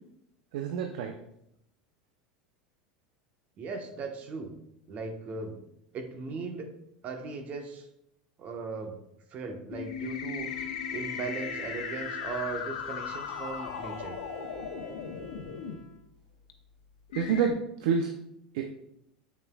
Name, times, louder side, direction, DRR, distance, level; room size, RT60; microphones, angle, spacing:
voice 1, 0.5-1.1 17.1-18.1 18.5-18.7, right 6 dB, 65° right, 5 dB, 0.7 m, -28 dB
voice 2, 3.6-4.5 4.9-5.6 5.9-6.7 7.0-7.9 8.4-9.0 9.3-14.2, right 4 dB, 40° right, 5 dB, 1.2 m, -38 dB
sound 1, 9.7-15.7 16.5-16.6 17.1-17.5, left 7 dB, 75° left, 0.9 m, -37 dB
Bowed string instrument, 10.4-16.0, right 2 dB, 85° right, 3.2 m, -48 dB
9.6 x 7.4 x 2.4 m, 0.78 s
hypercardioid pair, 85°, 4 cm